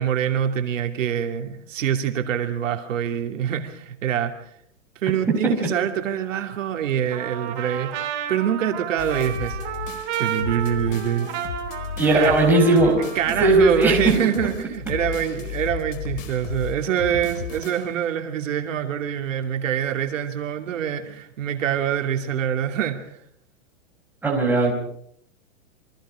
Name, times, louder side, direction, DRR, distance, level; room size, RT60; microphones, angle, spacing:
voice 1, 0.0-4.5 5.0-8.0 8.3-9.6 10.2-11.3 12.1-12.3 13.0-23.2, right 9 dB, 65° right, 4 dB, 2.9 m, -25 dB
Trumpet, 7.1-13.7, right 10 dB, 30° right, 3.5 m, -32 dB
sound 1, 9.0-18.1, left 7 dB, 70° left, 4.5 m, -34 dB
voice 2, 12.0-13.0 13.3-14.0 24.2-24.7, right 2 dB, 5° right, -2 dB, 4.8 m, -17 dB
28.5 x 24.5 x 5.0 m, 0.69 s
supercardioid pair, 170°, 40 cm